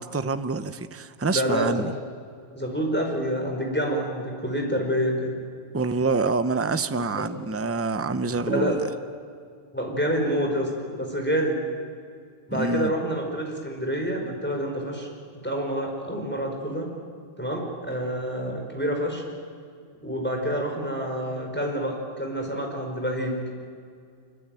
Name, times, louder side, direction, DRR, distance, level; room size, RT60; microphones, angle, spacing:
voice 1, 0.0-1.9 5.7-8.8 12.5-12.9, right 3 dB, 15° right, 10 dB, 0.7 m, -26 dB
voice 2, 1.3-1.8 2.5-5.4 8.0-8.1 8.4-8.8 9.7-11.6 12.5-15.1 15.4-16.9 17.4-19.2 20.0-23.4, equal, 10° left, 1 dB, 5.1 m, -27 dB
25.5 x 23.0 x 9.1 m, 2.2 s
omnidirectional pair, 1.3 m